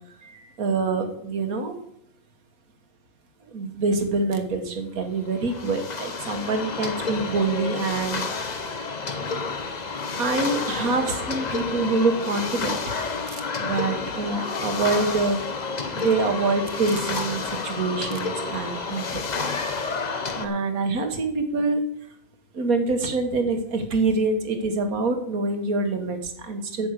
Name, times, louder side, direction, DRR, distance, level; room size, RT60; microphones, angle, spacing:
voice 1, 0.2-1.8 3.5-8.4 10.2-12.8 13.3-15.4 16.0-19.2 20.4-21.8 22.5-26.9, right 3 dB, 70° right, 6 dB, 1.8 m, -25 dB
sound 1, 5.3-20.5, left 4 dB, 35° left, 0.9 m, -30 dB
10.5 x 6.2 x 7.9 m, 0.73 s
omnidirectional pair, 1.5 m